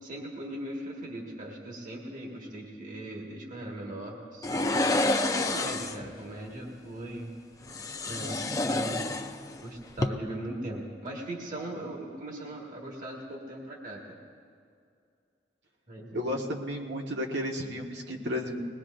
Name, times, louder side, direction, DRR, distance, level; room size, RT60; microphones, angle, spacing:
voice 1, 0.0-4.8 5.2-7.3 8.0-9.1 9.6-14.2 15.9-16.4, right 1 dB, 50° right, -1 dB, 1.7 m, -39 dB
sound 1, 4.4-6.1 7.7-9.6 9.9-10.1, left 2 dB, 20° left, 0.5 m, -28 dB
voice 2, 16.1-18.6, left 1 dB, 90° right, 1 dB, 1.5 m, -33 dB
21.0 x 19.5 x 2.6 m, 2.4 s
head